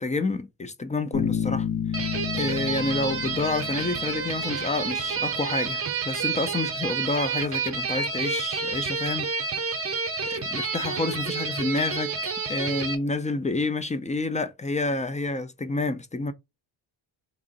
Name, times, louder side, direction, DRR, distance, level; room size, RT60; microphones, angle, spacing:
voice 1, 0.0-1.7 2.3-9.3 10.3-16.3, left 3 dB, 15° left, 0.3 m, -29 dB
Bass guitar, 1.1-4.8, left 8 dB, 90° left, 1.0 m, -31 dB
sound 1, 1.9-13.0, right 5 dB, 30° right, 0.7 m, -29 dB
Wind instrument woodwind instrument, 2.3-6.5, left 5 dB, 55° left, 1.1 m, -48 dB
2.9 x 2.5 x 3.8 m
cardioid pair, 80°, 46 cm